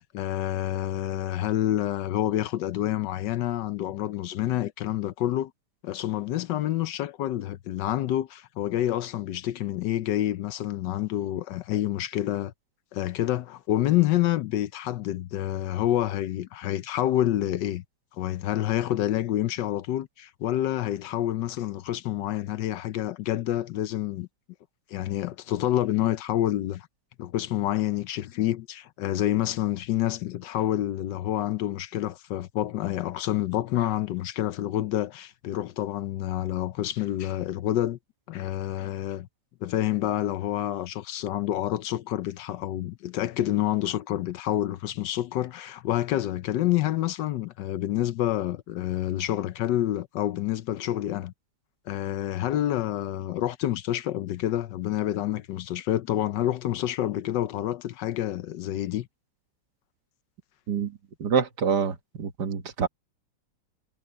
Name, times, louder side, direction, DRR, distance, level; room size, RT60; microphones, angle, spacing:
voice 1, 0.0-5.5 5.8-12.5 12.9-17.8 18.2-24.3 24.9-26.9 27.2-38.0 38.3-39.3 39.6-51.3 51.9-59.1, left 13 dB, 75° left, 1.3 m, -28 dB
voice 2, 60.7-62.9, right 6 dB, 60° right, 2.0 m, -27 dB
omnidirectional pair, 2.0 m